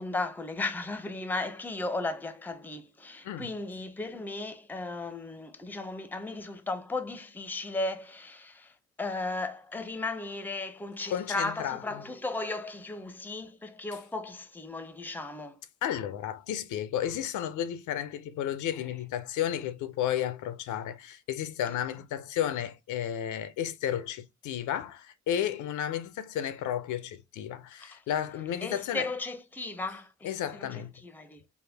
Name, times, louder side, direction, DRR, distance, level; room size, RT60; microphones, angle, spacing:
voice 1, 0.0-15.6 18.7-19.0 27.8-28.0 28.6-31.4, left 2 dB, 5° left, 0.5 m, -36 dB
voice 2, 11.1-12.0 15.8-29.1 30.2-30.9, left 10 dB, 75° left, 0.5 m, -33 dB
3.5 x 2.1 x 3.3 m
cardioid pair, 90°, 30 cm